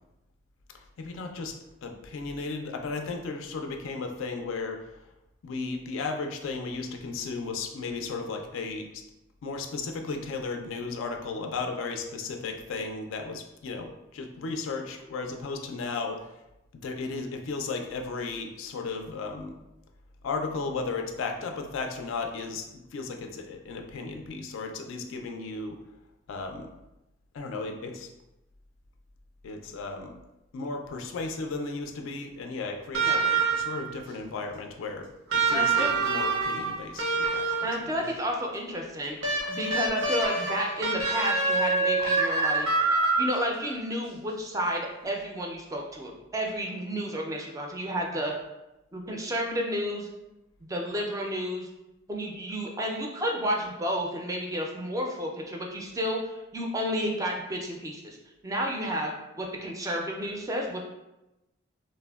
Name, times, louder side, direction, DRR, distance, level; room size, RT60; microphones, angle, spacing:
voice 1, 1.0-1.5 1.8-4.9 5.4-9.0 9.4-16.2 16.8-19.6 20.2-25.8 26.3-26.7 27.3-28.1 29.4-30.1 30.5-37.7 38.0-38.1, left 4 dB, 75° left, 4 dB, 0.3 m, -35 dB
sound 1, 32.9-33.9 35.3-37.9 39.2-43.7 45.0-45.1, right 3 dB, 80° right, 0.6 m, -26 dB
voice 2, 35.5-35.9 37.6-39.2 39.5-42.7 43.2-48.3 48.9-50.1 50.7-51.7 52.1-58.2 58.4-59.1 59.4-60.8, equal, 15° right, 0 dB, 0.3 m, -31 dB
3.2 x 2.1 x 2.2 m, 0.95 s
head